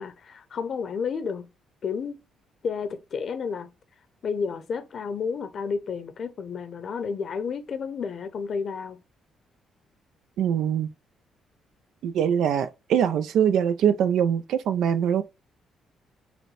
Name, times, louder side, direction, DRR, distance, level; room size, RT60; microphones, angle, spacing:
voice 1, 0.0-1.5 1.8-2.2 2.6-3.7 4.2-9.0, left 5 dB, 55° left, 0.7 m, -31 dB
voice 2, 10.4-10.9 12.0-15.2, right 8 dB, 80° right, 0.5 m, -23 dB
5.1 x 2.2 x 4.6 m
cardioid pair, 90°, 0 cm